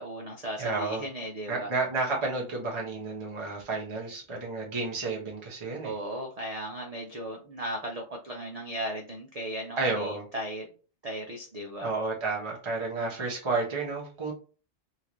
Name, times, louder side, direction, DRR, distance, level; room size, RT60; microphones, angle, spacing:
voice 1, 0.0-1.7 5.8-10.7 11.0-11.9, right 1 dB, 70° right, 2 dB, 0.3 m, -36 dB
voice 2, 0.6-1.0 1.5-5.9 9.8-10.2 11.8-14.3, right 3 dB, 25° right, -2 dB, 0.9 m, -31 dB
3.9 x 2.5 x 3.0 m, 0.37 s
omnidirectional pair, 1.3 m